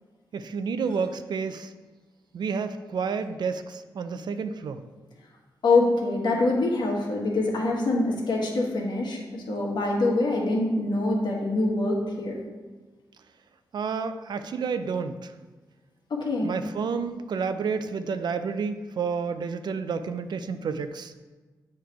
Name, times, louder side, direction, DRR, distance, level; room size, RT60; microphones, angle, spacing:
voice 1, 0.3-1.7 2.3-4.8 13.7-15.3 16.4-21.1, right 5 dB, 65° right, 10 dB, 0.4 m, -30 dB
voice 2, 5.6-12.4 16.1-16.5, left 2 dB, 65° left, -2 dB, 1.4 m, -25 dB
8.0 x 3.2 x 4.6 m, 1.3 s
cardioid pair, 85°, 8 cm